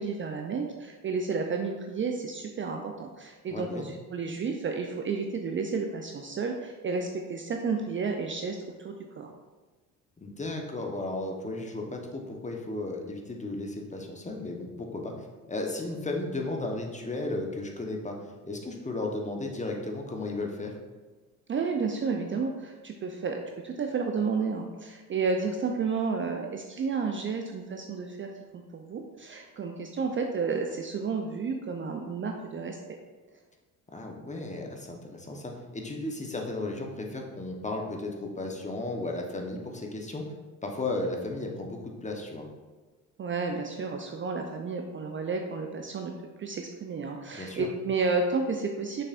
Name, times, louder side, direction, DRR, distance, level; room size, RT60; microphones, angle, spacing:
voice 1, 0.0-9.3 21.5-32.8 43.2-46.1 46.4-49.0, right 4 dB, 30° right, 3 dB, 0.5 m, -31 dB
voice 2, 3.5-3.9 10.2-18.1 18.4-20.8 33.9-40.2 40.6-42.4 47.3-47.7, left 2 dB, 15° left, 1 dB, 1.1 m, -34 dB
6.5 x 5.7 x 2.5 m, 1.3 s
hypercardioid pair, 60°, 42 cm